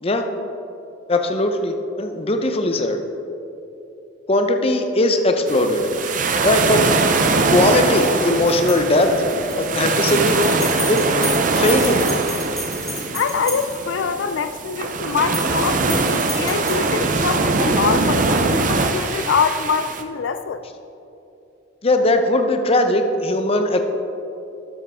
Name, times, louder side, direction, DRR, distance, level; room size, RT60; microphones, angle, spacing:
voice 1, 1.1-3.0 4.3-5.9 6.4-6.8 7.5-9.1 9.6-10.4 10.9-11.0 11.5-12.0 21.8-23.8, left 1 dB, 30° left, 6 dB, 0.6 m, -19 dB
sound 1, 5.5-20.0, right 3 dB, 45° right, 0.6 m, -22 dB
sound 2, 7.9-14.0 15.1-15.6 15.8-17.4, left 1 dB, ahead, 1.1 m, -32 dB
voice 2, 13.1-20.6, left 6 dB, 85° left, 10 dB, 0.4 m, -24 dB
12.5 x 7.2 x 3.6 m, 2.9 s
head